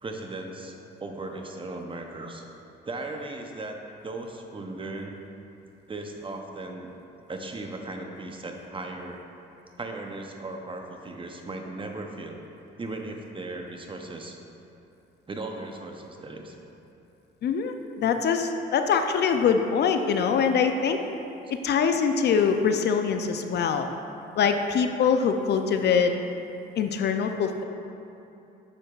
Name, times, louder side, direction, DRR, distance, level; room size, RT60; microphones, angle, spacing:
voice 1, 0.0-2.4 2.9-3.8 4.0-5.2 5.9-6.9 7.3-9.2 9.8-12.4 12.8-14.4 15.3-16.6, right 2 dB, 25° right, 3 dB, 0.6 m, -37 dB
voice 2, 17.4-21.0 21.6-23.9 24.4-26.1 26.8-27.6, left 6 dB, 60° left, 6 dB, 0.4 m, -23 dB
7.4 x 6.6 x 2.4 m, 2.8 s
cardioid pair, 90°, 20 cm